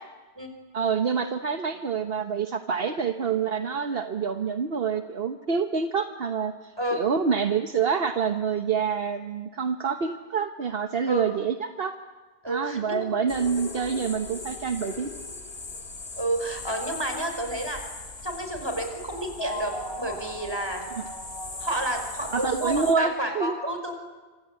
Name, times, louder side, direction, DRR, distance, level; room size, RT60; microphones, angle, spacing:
voice 1, 0.7-11.9 12.5-15.1 20.9-21.0 22.3-23.5, right 6 dB, 60° right, 6 dB, 1.3 m, -27 dB
voice 2, 12.4-13.3 16.2-17.8 18.2-20.8 21.6-24.0, right 1 dB, 25° right, 5 dB, 5.1 m, -30 dB
sound 1, 13.3-22.9, left 2 dB, 70° left, 3.0 m, -38 dB
26.0 x 26.0 x 8.5 m, 1.3 s
omnidirectional pair, 1.1 m